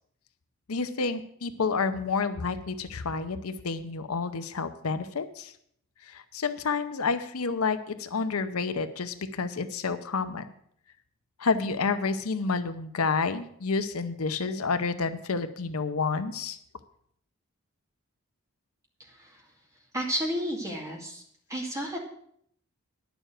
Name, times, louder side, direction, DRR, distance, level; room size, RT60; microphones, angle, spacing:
voice 1, 0.7-5.5 6.0-10.5 11.4-16.6, left 4 dB, 80° left, 11 dB, 0.7 m, -29 dB
voice 2, 19.1-19.4 19.9-21.2 21.5-22.0, equal, 15° right, -1 dB, 2.2 m, -32 dB
10.0 x 7.0 x 7.6 m, 0.67 s
head